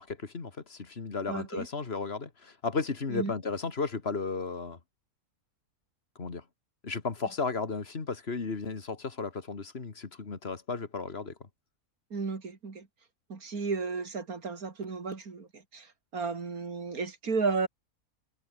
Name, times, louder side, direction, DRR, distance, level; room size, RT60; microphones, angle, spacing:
voice 1, 0.0-4.8 6.2-6.4 6.8-11.3, left 4 dB, 40° left, 2.0 m, -34 dB
voice 2, 1.3-1.7 3.1-3.3 12.1-12.9 13.3-17.7, right 4 dB, 70° right, 3.2 m, -33 dB
omnidirectional pair, 1.6 m